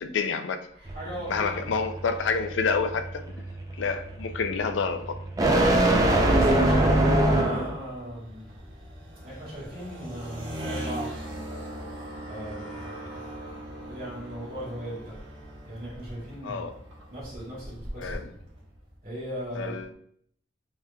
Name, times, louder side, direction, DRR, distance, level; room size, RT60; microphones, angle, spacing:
voice 1, 0.0-0.6 1.3-3.2 3.8-5.2 5.7-6.7 16.4-16.7 18.0-18.3 19.6-19.9, left 5 dB, 75° left, 9 dB, 0.4 m, -29 dB
voice 2, 0.7-1.8 6.3-8.5 9.2-11.1 12.2-13.3 13.9-15.2 15.6-16.7 17.1-18.2 19.0-19.7, equal, 50° right, -7 dB, 1.6 m, -37 dB
sound 1, 0.9-7.8, right 1 dB, 20° right, 0.4 m, -24 dB
sound 2, 7.7-19.0, right 1 dB, 85° right, 1.3 m, -41 dB
5.5 x 3.2 x 2.3 m, 0.67 s
head